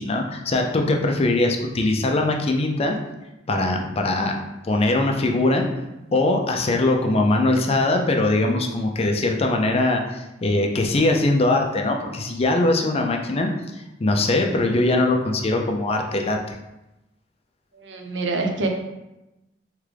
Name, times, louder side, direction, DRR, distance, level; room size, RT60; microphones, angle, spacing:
voice 1, 0.0-3.0 3.5-4.3 4.6-5.7 6.1-13.5 14.0-16.4, left 2 dB, 35° left, 3 dB, 0.5 m, -21 dB
voice 2, 17.7-18.7, right 3 dB, 80° right, 3 dB, 0.7 m, -26 dB
3.7 x 3.4 x 3.3 m, 0.95 s
head